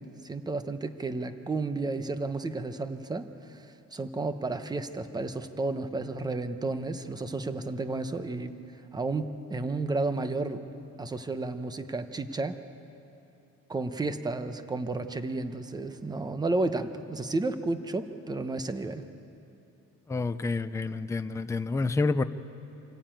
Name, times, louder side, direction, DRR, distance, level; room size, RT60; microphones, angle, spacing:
voice 1, 0.2-8.5 8.9-10.6 11.0-12.6 13.7-19.1, right 3 dB, 15° right, 9 dB, 0.8 m, -32 dB
voice 2, 20.1-22.2, left 3 dB, 10° left, 10 dB, 0.4 m, -28 dB
26.0 x 14.5 x 9.1 m, 2.9 s
cardioid pair, 165°, 29 cm